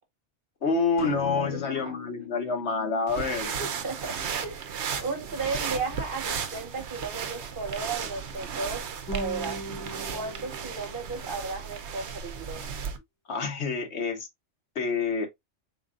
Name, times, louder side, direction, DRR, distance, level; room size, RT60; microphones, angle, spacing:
voice 1, 0.6-3.5 13.3-14.3 14.7-15.3, left 4 dB, 70° left, 1.2 m, -27 dB
sound 1, 1.0-4.8, left 6 dB, 45° left, 0.9 m, -40 dB
voice 2, 1.3-2.0 3.6-4.2 4.4-8.8 9.1-9.6 10.1-12.6, right 4 dB, 50° right, 1.1 m, -35 dB
sound 2, 3.1-13.0, right 7 dB, 70° right, 1.0 m, -35 dB
sound 3, 9.1-11.6, equal, 20° left, 0.5 m, -40 dB
4.1 x 3.9 x 2.4 m
omnidirectional pair, 1.2 m